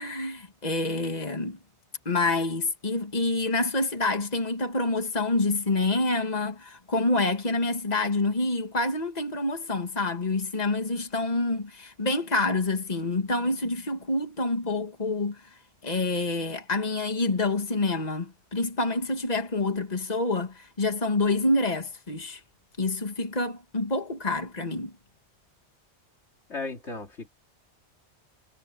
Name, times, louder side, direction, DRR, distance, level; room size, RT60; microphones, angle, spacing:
voice 1, 0.0-1.6 2.1-15.5 15.8-22.4 22.8-24.9, left 2 dB, 35° left, 2.2 m, -27 dB
voice 2, 26.5-27.3, left 3 dB, 90° left, 3.2 m, -35 dB
omnidirectional pair, 1.1 m